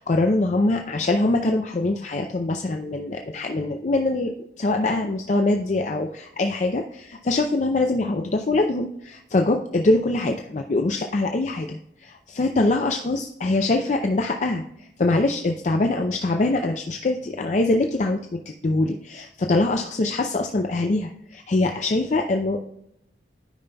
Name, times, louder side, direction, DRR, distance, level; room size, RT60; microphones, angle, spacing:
voice 1, 0.0-4.3 4.6-22.7, left 2 dB, 40° left, 4 dB, 0.4 m, -23 dB
12.0 x 5.4 x 2.2 m, 0.78 s
head